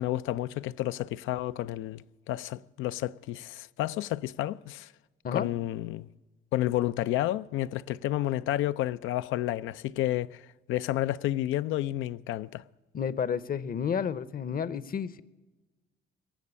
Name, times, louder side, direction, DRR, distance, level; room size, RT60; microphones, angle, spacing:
voice 1, 0.0-4.9 5.3-6.1 6.5-10.4 10.7-12.6, left 14 dB, 90° left, 0.4 m, -30 dB
voice 2, 12.9-15.2, left 7 dB, 45° left, 0.7 m, -31 dB
18.0 x 7.4 x 9.8 m
cardioid pair, 90°, 20 cm